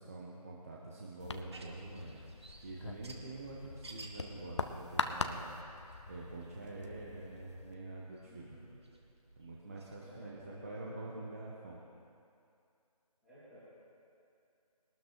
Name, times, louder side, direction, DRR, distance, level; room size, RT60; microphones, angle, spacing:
voice 1, 0.0-5.6 6.1-8.6 9.4-11.8, right 2 dB, 25° right, -4 dB, 0.9 m, -46 dB
sound 1, 1.2-7.7, left 3 dB, 45° left, 0.8 m, -42 dB
sound 2, 1.3-10.3, right 2 dB, 45° right, 1.6 m, -57 dB
voice 2, 8.2-8.8 10.0-10.7 13.2-13.6, equal, ahead, -16 dB, 2.3 m, -55 dB
22.5 x 12.5 x 3.0 m, 2.6 s
figure-of-eight pair, 165°, 20 cm